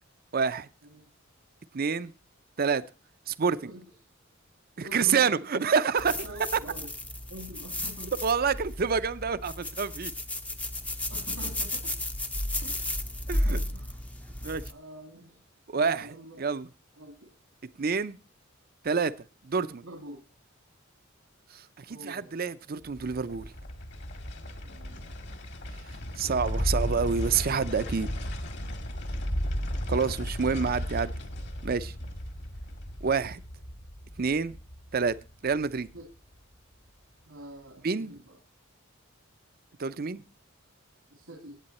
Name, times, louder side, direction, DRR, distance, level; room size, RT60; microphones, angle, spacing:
voice 1, 0.3-0.7 1.7-2.1 2.6-2.8 3.3-3.7 4.8-6.1 8.2-10.1 13.3-13.6 14.4-14.6 15.7-16.1 16.4-16.7 17.8-18.2 18.8-19.1 19.4-19.8 21.5-23.5 26.2-28.1 29.9-31.1 31.6-31.9 33.0-33.4 34.2-34.6 34.9-35.2 35.4-35.9 37.8-38.1 39.8-40.2, right 5 dB, 45° right, 14 dB, 0.6 m, -27 dB
voice 2, 4.8-5.5 6.1-6.9 7.3-8.2 11.1-11.9 12.6-12.8 13.3-14.0 14.5-15.4 15.7-16.4 16.9-17.3 19.8-20.2 21.9-22.4 24.6-25.2 29.7-30.0 35.9-36.1 37.3-38.4 41.1-41.6, equal, 90° right, 2 dB, 2.6 m, -46 dB
sound 1, 6.0-14.7, left 1 dB, 5° left, 0.6 m, -33 dB
sound 2, 22.8-36.0 36.3-36.4, equal, 55° left, 1.9 m, -35 dB
16.5 x 8.7 x 4.2 m, 0.34 s
head